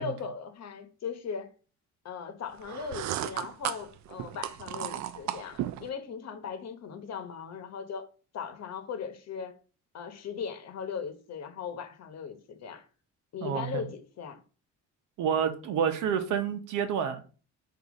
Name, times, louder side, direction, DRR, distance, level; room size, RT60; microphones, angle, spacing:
voice 1, 0.0-1.5 2.0-8.1 8.3-9.6 9.9-12.9 13.3-14.4, left 6 dB, 60° left, 1.0 m, -38 dB
sound 1, 2.6-5.9, right 12 dB, 65° right, 0.4 m, -35 dB
voice 2, 13.4-13.8 15.2-17.2, right 7 dB, 90° right, 0.8 m, -29 dB
4.0 x 2.7 x 4.8 m
cardioid pair, 90°, 30 cm